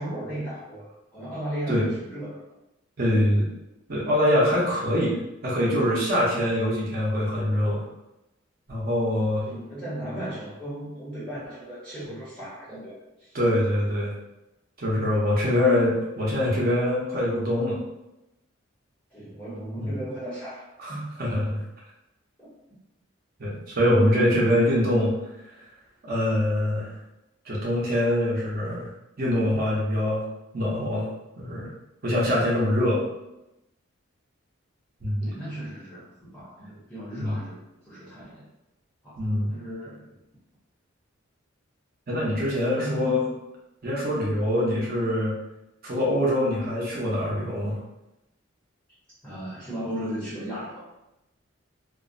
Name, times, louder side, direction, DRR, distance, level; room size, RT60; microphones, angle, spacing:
voice 1, 0.0-2.5 9.4-12.9 13.2-13.4 19.1-21.1 35.2-37.6 37.8-38.5 39.0-40.1 42.8-43.4 49.2-50.8, right 1 dB, 5° left, -11 dB, 0.6 m, -36 dB
voice 2, 3.0-3.5 3.9-5.2 5.4-7.8 8.7-9.5 13.3-14.1 14.8-17.8 19.8-19.9 20.8-21.6 23.4-25.1 26.0-26.9 27.5-28.9 29.2-30.2 30.5-31.1 31.4-31.7 32.0-33.0 35.0-35.3 37.2-37.4 39.2-39.5 42.1-43.2 43.8-45.3 45.8-47.8, left 1 dB, 45° right, -5 dB, 0.7 m, -24 dB
2.5 x 2.0 x 2.5 m, 0.93 s
head